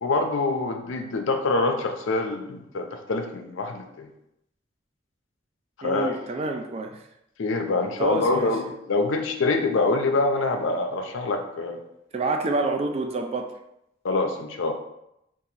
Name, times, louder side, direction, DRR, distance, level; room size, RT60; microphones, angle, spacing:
voice 1, 0.0-4.1 5.8-6.2 7.4-11.8 14.0-14.7, left 3 dB, 70° left, 5 dB, 0.5 m, -25 dB
voice 2, 5.8-7.0 8.0-8.5 12.1-13.6, right 2 dB, 30° right, 4 dB, 0.3 m, -28 dB
2.8 x 2.5 x 3.9 m, 0.82 s
head